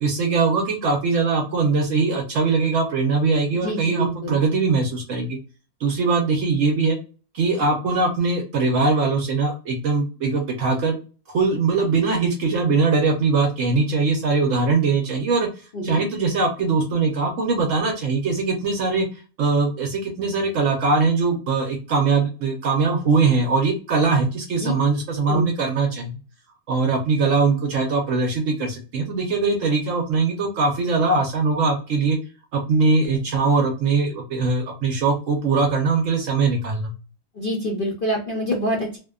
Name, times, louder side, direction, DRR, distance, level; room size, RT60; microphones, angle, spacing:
voice 1, 0.0-5.4 5.8-7.0 7.3-11.0 11.3-26.2 26.7-32.2 32.5-36.9, right 4 dB, 70° right, 3 dB, 0.8 m, -21 dB
voice 2, 3.5-4.4 15.7-16.1 24.6-24.7 25.3-25.5 37.3-39.0, equal, 65° left, -2 dB, 0.5 m, -26 dB
2.6 x 2.1 x 2.3 m, 0.34 s
omnidirectional pair, 1.7 m